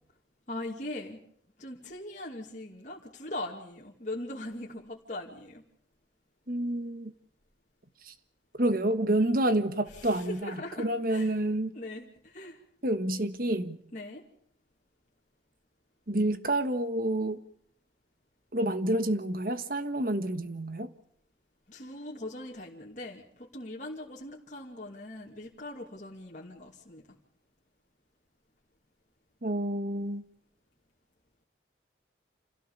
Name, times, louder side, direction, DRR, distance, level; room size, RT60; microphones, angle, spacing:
voice 1, 0.5-1.2 1.6-5.6 9.9-11.3 11.7-12.6 13.9-14.2 21.7-27.0, left 1 dB, 40° left, 2.6 m, -40 dB
voice 2, 6.5-7.1 8.0-8.1 8.6-11.7 12.8-13.8 16.1-17.4 18.5-20.9 29.4-30.2, right 1 dB, 50° right, 1.4 m, -28 dB
28.0 x 16.5 x 7.3 m
head